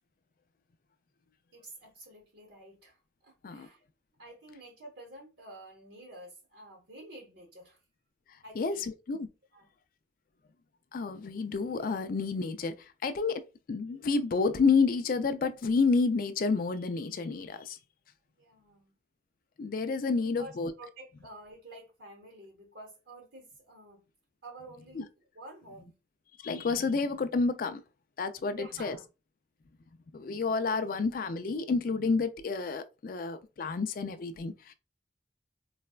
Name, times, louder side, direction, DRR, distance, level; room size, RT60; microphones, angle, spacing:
voice 1, 1.5-3.8 4.2-7.8 8.4-8.9 9.5-9.7 18.4-18.9 20.2-24.0 24.4-25.1 25.3-26.0 28.4-29.1, right 1 dB, 70° right, 0.9 m, -50 dB
voice 2, 8.6-9.3 10.9-12.8 13.0-17.8 19.6-20.7 25.0-25.1 26.4-27.8 28.2-29.0 30.1-34.7, left 4 dB, 50° left, 0.3 m, -29 dB
4.0 x 2.2 x 2.3 m
head